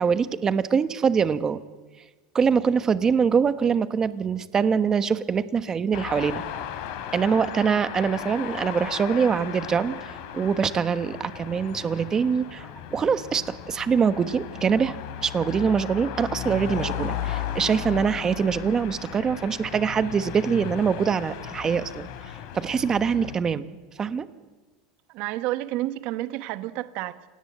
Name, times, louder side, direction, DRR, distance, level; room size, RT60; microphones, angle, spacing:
voice 1, 0.0-1.6 2.3-6.4 7.1-15.0 15.2-22.1 22.5-23.6 24.0-24.3, right 6 dB, 20° right, 1.1 m, -24 dB
sound 1, 5.9-23.4, left 10 dB, 65° left, 3.1 m, -36 dB
voice 2, 25.1-27.2, right 16 dB, 55° right, 1.1 m, -30 dB
27.0 x 18.0 x 8.0 m
supercardioid pair, 140°, 3 cm